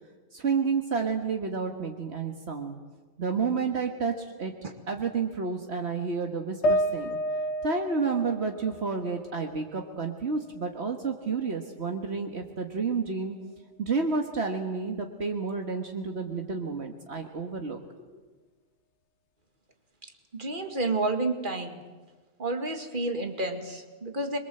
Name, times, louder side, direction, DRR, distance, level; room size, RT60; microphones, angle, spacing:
voice 1, 0.3-2.8 3.2-4.5 4.9-7.2 7.6-13.3 13.8-17.8, right 4 dB, 70° right, 3 dB, 1.8 m, -30 dB
sound 1, 6.6-10.0 10.4-11.5, equal, 90° left, 1.4 m, -31 dB
voice 2, 20.0-21.8 22.4-24.4, right 2 dB, 50° right, 5 dB, 2.3 m, -30 dB
25.5 x 22.5 x 7.9 m, 1.3 s
omnidirectional pair, 1.1 m